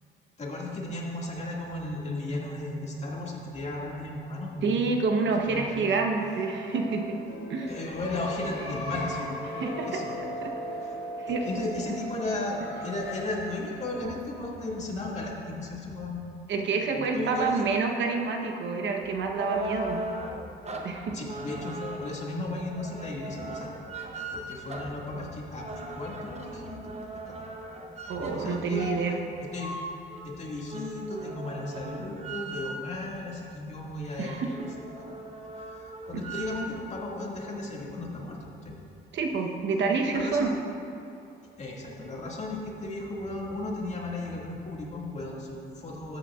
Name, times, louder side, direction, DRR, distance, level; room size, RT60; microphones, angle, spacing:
voice 1, 0.4-4.8 5.5-5.8 7.7-9.6 9.9-10.3 10.8-10.9 11.3-16.3 16.9-17.6 21.1-23.7 24.3-26.9 27.3-27.4 28.2-29.0 29.5-29.8 30.2-34.3 35.0-35.1 35.7-38.8 40.1-40.5 41.6-46.2, left 2 dB, 35° left, -3 dB, 2.0 m, -35 dB
voice 2, 4.6-7.2 7.5-7.7 9.6-10.5 11.2-11.5 16.5-20.0 20.8-21.1 28.1-29.2 34.2-34.5 36.1-36.2 39.1-40.5, right 4 dB, 65° right, 3 dB, 0.9 m, -28 dB
sound 1, 6.0-15.4, equal, 55° left, 2.3 m, -38 dB
sound 2, 19.0-33.1 33.6-33.7 33.9-36.8, right 1 dB, 35° right, 1.0 m, -39 dB
13.0 x 9.1 x 2.4 m, 2.6 s
cardioid pair, 90°, 20 cm